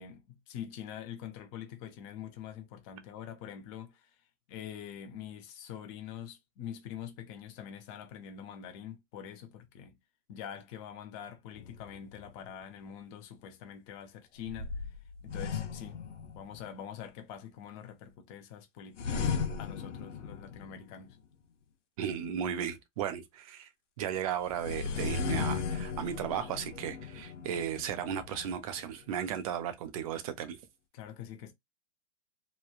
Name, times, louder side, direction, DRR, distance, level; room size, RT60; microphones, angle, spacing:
voice 1, 0.0-4.1 4.5-10.0 10.3-14.7 15.2-21.2 30.9-31.5, left 9 dB, 25° left, 0.5 m, -45 dB
sound 1, 11.5-12.5 14.4-16.8 19.0-21.1 24.4-29.1, left 5 dB, 85° left, 0.7 m, -37 dB
voice 2, 22.0-23.7 24.0-30.6, right 9 dB, 30° right, 0.4 m, -35 dB
3.1 x 2.1 x 2.3 m
hypercardioid pair, 140°, 35 cm